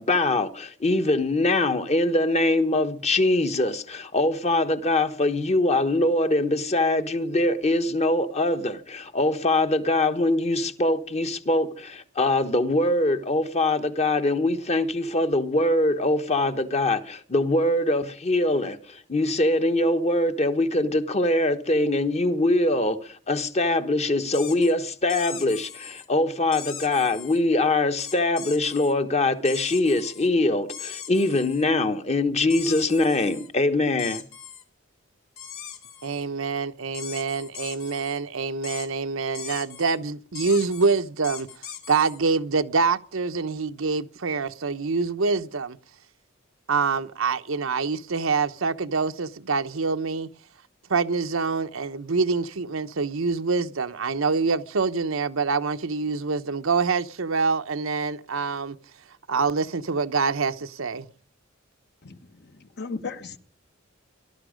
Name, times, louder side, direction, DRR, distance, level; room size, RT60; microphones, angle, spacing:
voice 1, 0.0-34.2, left 2 dB, 35° left, 1.2 m, -23 dB
sound 1, 24.3-24.7 25.1-26.1 26.5-27.4 28.0-28.9 29.4-30.3 30.7-31.6 32.5-33.5 34.0-34.6 35.4-36.2 36.9-38.2 38.6-38.9 39.3-40.0 40.3-42.2, left 9 dB, 85° left, 2.8 m, -39 dB
voice 2, 36.0-41.5 41.9-45.8 46.7-50.3 50.9-58.8 59.3-61.1, right 4 dB, 80° right, 0.9 m, -25 dB
voice 3, 62.0-63.4, left 4 dB, 55° left, 1.3 m, -36 dB
18.5 x 12.5 x 5.1 m
head